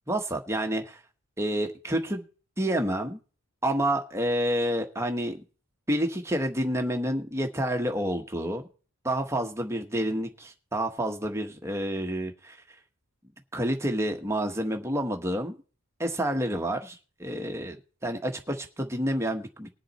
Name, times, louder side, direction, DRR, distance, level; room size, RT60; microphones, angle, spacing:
voice 1, 0.1-1.0 1.4-2.2 2.6-3.2 3.6-5.4 5.9-8.7 9.0-12.6 13.5-15.6 16.0-17.8 18.0-19.7, right 1 dB, 10° right, 4 dB, 1.2 m, -29 dB
20.0 x 7.4 x 4.2 m, 0.37 s
head